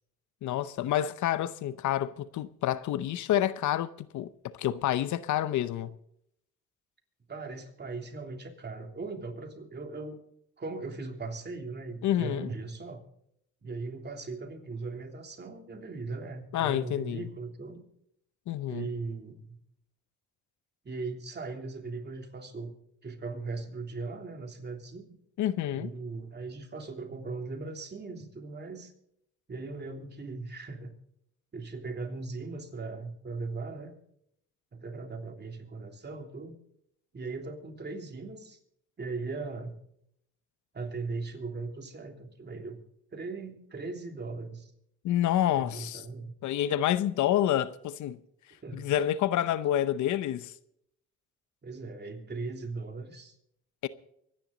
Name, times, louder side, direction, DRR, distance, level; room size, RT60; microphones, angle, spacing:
voice 1, 0.4-5.9 12.0-12.5 16.5-17.3 18.5-18.9 25.4-25.9 45.0-46.0 46.4-48.2 48.7-50.5 53.8-53.9, left 12 dB, 75° left, 0.8 m, -28 dB
voice 2, 7.3-10.2 10.6-13.0 13.6-17.8 18.6-19.6 20.8-22.7 23.0-25.2 25.7-28.9 29.5-30.9 31.5-34.0 34.7-36.6 37.1-38.6 39.0-39.8 40.7-42.8 43.1-44.7 45.6-46.3 48.6-48.9 51.6-53.3, right 3 dB, 35° right, 3.2 m, -39 dB
24.5 x 10.5 x 4.0 m
cardioid pair, 90°, 30 cm